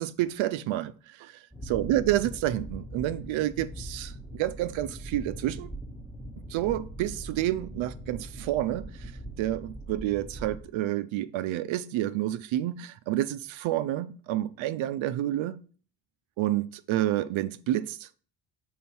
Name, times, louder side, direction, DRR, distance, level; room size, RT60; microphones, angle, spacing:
voice 1, 0.0-1.4 1.7-5.7 6.5-9.1 9.4-15.6 16.4-18.1, right 14 dB, 70° right, 0.5 m, -29 dB
sound 1, 1.5-10.6, right 1 dB, ahead, 0.7 m, -41 dB
5.5 x 4.2 x 4.4 m
cardioid pair, 95°, 49 cm